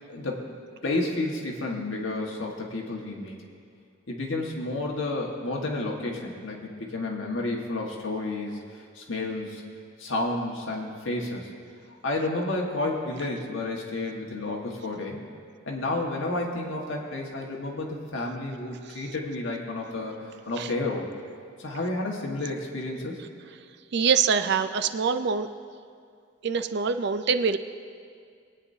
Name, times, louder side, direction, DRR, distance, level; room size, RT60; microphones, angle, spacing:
voice 1, 0.1-0.4 0.8-3.4 4.1-9.6 10.0-11.5 12.0-15.2 15.7-21.1 21.6-23.2, left 2 dB, 65° left, -1 dB, 1.6 m, -31 dB
voice 2, 23.9-25.5 26.4-27.6, right 6 dB, 55° right, 10 dB, 0.4 m, -24 dB
21.5 x 9.0 x 2.7 m, 2.2 s
head